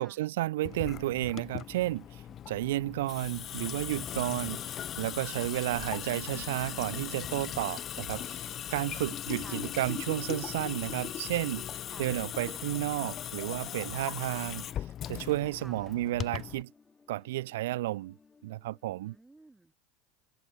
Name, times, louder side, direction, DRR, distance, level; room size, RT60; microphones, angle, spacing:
voice 1, 0.0-16.7 17.1-18.1 18.4-19.2, right 16 dB, 75° right, 0.5 m, -32 dB
Water tap faucet / Sink (filling or washing) / Drip, 0.7-16.6, left 10 dB, 40° left, 1.0 m, -39 dB
voice 2, 2.3-2.6 4.2-4.7 7.8-8.6 9.4-9.7 11.9-12.1 15.6-15.9 19.0-19.8, right 2 dB, 10° right, 7.7 m, -56 dB
sound 1, 6.4-19.2, left 4 dB, 20° left, 6.1 m, -63 dB
hypercardioid pair, 90°, 0 cm